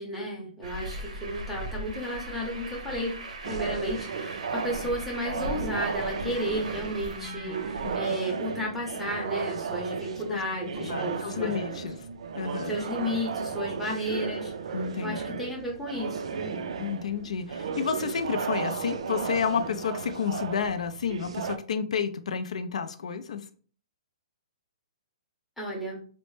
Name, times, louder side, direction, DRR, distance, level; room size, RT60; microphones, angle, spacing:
voice 1, 0.0-3.1 3.4-11.6 12.6-14.5 15.0-16.6 25.6-26.0, equal, ahead, -3 dB, 0.6 m, -33 dB
Truck, 0.6-8.0, right 1 dB, 80° right, 0.7 m, -39 dB
sound 1, 3.4-21.6, right 6 dB, 60° right, 0.4 m, -35 dB
voice 2, 7.1-7.5 7.8-8.0 10.3-10.4 10.8-12.0 12.3-12.8 14.7-15.4 16.8-23.4, left 6 dB, 65° left, 9 dB, 0.4 m, -31 dB
4.1 x 2.1 x 3.1 m, 0.43 s
hypercardioid pair, 175°, 4 cm